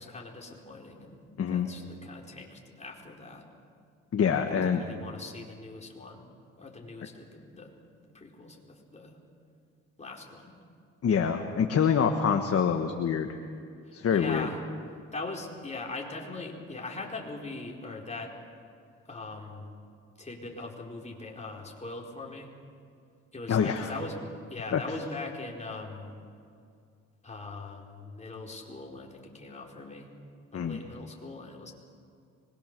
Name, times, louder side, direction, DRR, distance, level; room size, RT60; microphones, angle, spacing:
voice 1, 0.0-1.2 1.5-3.4 4.5-6.2 6.6-9.2 10.0-10.5 13.9-14.6 15.1-18.3 19.1-19.7 20.2-22.5 23.3-24.2 24.5-26.1 27.2-30.1 30.5-31.7, left 3 dB, 25° left, -1 dB, 4.6 m, -41 dB
voice 2, 1.4-1.7 4.1-4.8 11.0-13.3 13.9-14.5 23.5-23.9 24.7-24.8 30.5-30.8, left 7 dB, 50° left, 4 dB, 1.5 m, -25 dB
25.5 x 22.0 x 6.9 m, 2.3 s
cardioid pair, 90°, 30 cm